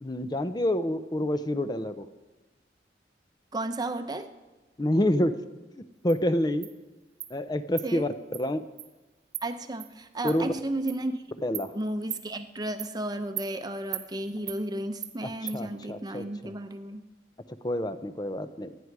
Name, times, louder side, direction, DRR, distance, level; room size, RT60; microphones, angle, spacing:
voice 1, 0.0-2.1 4.8-5.4 6.0-6.7 7.3-8.6 10.2-10.5 11.4-11.7 15.5-16.2 17.6-18.8, left 1 dB, 25° left, 11 dB, 0.7 m, -27 dB
voice 2, 3.5-4.3 7.8-8.1 9.4-11.2 11.7-17.1, right 1 dB, 20° right, 8 dB, 0.8 m, -33 dB
Insect, 6.1-6.2 6.6-6.7 7.2-7.3 7.8-7.9 8.3-8.4 8.8-8.9 9.3-9.4 9.8-9.9 10.3-10.4 10.9-11.0 11.5-11.7 12.1-12.2 12.8-12.9 13.4-13.5 13.9-14.1 14.5-14.6 15.0-15.1 15.5-15.6, right 14 dB, 90° right, 1.2 m, -36 dB
28.5 x 9.6 x 4.8 m, 1.2 s
head